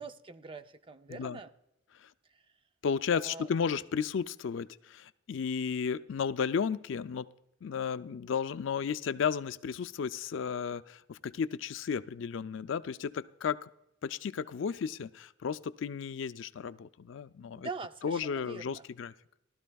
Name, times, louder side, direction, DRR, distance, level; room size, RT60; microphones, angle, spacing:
voice 1, 0.0-1.5 3.1-3.5 17.5-18.8, right 4 dB, 25° right, 10 dB, 0.5 m, -43 dB
voice 2, 1.1-1.4 2.0-2.1 2.8-7.3 7.6-13.7 14.0-17.7 18.0-19.1, left 6 dB, 70° left, 13 dB, 0.4 m, -33 dB
18.0 x 12.5 x 2.3 m, 0.84 s
head